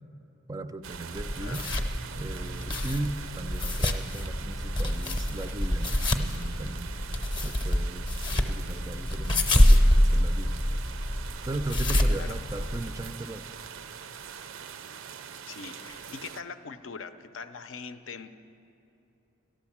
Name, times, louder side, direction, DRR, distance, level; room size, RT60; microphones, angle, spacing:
voice 1, 0.5-1.7 2.2-6.9 7.4-8.1 8.3-10.6 11.4-13.5, right 2 dB, 15° right, 10 dB, 0.4 m, -37 dB
sound 1, 0.8-16.4, right 7 dB, 85° right, 0.5 m, -43 dB
sound 2, 1.1-13.1, left 1 dB, 25° left, 0.7 m, -26 dB
voice 2, 15.4-18.3, left 5 dB, 75° left, 10 dB, 0.6 m, -42 dB
13.0 x 11.5 x 7.2 m, 3.0 s
head